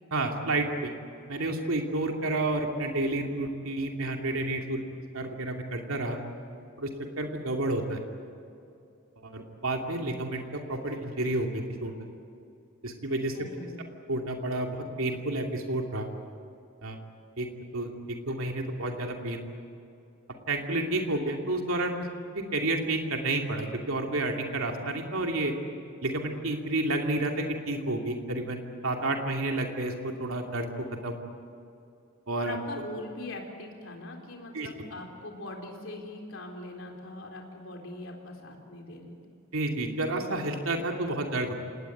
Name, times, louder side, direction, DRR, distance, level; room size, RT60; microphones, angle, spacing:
voice 1, 0.1-0.9 1.3-4.8 5.1-6.2 6.8-6.9 7.2-8.0 9.2-11.9 12.8-13.4 14.1-16.1 16.8-17.0 17.4-17.5 17.7-19.4 20.5-22.1 22.3-25.5 26.0-31.2 32.3-32.6 34.5-34.7 39.5-41.5, right 2 dB, 75° right, 2 dB, 2.6 m, -30 dB
voice 2, 13.3-13.8 32.3-39.2, left 2 dB, 65° left, 1 dB, 4.1 m, -41 dB
27.0 x 19.5 x 9.4 m, 2.6 s
head